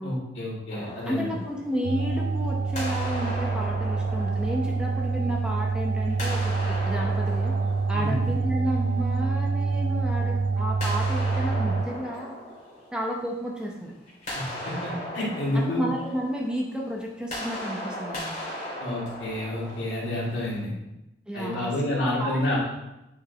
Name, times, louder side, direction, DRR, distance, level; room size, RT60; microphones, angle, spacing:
voice 1, 0.0-1.3 7.9-8.2 14.3-15.8 18.8-20.7 21.3-22.6, left 1 dB, 80° left, -5 dB, 2.1 m, -29 dB
sound 1, 0.7-2.3 2.7-5.5 6.1-9.0 10.8-13.6 13.9-20.6, left 1 dB, 40° left, 2.3 m, -38 dB
voice 2, 1.1-7.6 7.9-12.3 12.9-13.9 15.5-18.4 21.3-22.6, equal, 5° right, -1 dB, 0.7 m, -32 dB
sound 2, 1.8-11.9, right 4 dB, 65° right, 0.4 m, -26 dB
8.5 x 4.0 x 3.4 m, 0.94 s
head